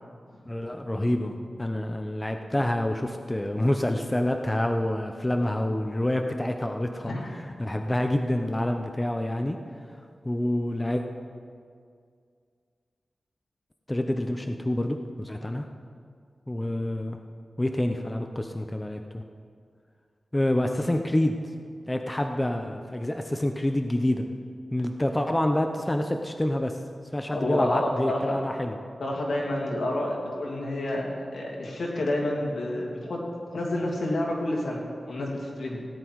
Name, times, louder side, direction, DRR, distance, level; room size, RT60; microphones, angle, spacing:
voice 1, 0.5-7.1 7.6-9.6 10.2-11.0 13.9-15.6 16.5-17.2 17.6-19.2 20.3-21.4 21.9-24.3 24.7-26.7 27.1-28.8, left 1 dB, 15° left, 4 dB, 0.7 m, -27 dB
voice 2, 27.3-28.4 29.0-33.2 33.5-35.9, left 1 dB, 75° left, -2 dB, 2.8 m, -29 dB
17.5 x 10.0 x 4.7 m, 2.2 s
wide cardioid pair, 95°, 0 cm